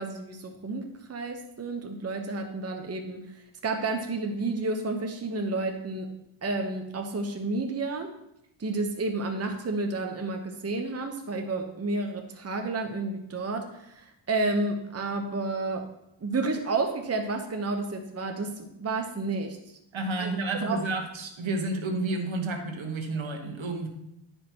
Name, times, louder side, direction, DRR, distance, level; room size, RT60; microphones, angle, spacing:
voice 1, 0.0-6.1 6.4-8.1 8.6-15.9 16.2-19.6 20.2-20.3 20.6-20.8, right 3 dB, 30° right, 4 dB, 0.9 m, -31 dB
voice 2, 19.9-23.9, right 2 dB, 70° right, 4 dB, 1.5 m, -30 dB
10.5 x 5.4 x 4.5 m, 0.81 s
wide cardioid pair, 100°, 49 cm